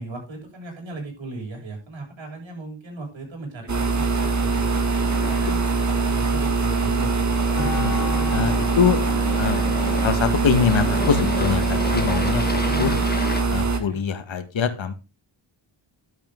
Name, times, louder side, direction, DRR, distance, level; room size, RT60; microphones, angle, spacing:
voice 1, 0.0-4.6 5.2-7.4 12.6-13.0 13.6-14.0, right 2 dB, 75° right, 1 dB, 7.3 m, -37 dB
sound 1, 3.7-13.8, right 4 dB, 35° right, 2.1 m, -22 dB
Aircraft, 4.2-13.4, left 2 dB, 20° left, 1.6 m, -34 dB
sound 2, 7.5-12.7, left 2 dB, 35° left, 3.2 m, -36 dB
voice 2, 7.6-7.9 8.3-9.0 9.4-9.6 10.0-12.9 13.5-15.0, left 6 dB, 70° left, 9 dB, 1.9 m, -23 dB
12.0 x 11.0 x 3.8 m, 0.28 s
wide cardioid pair, 165°, 47 cm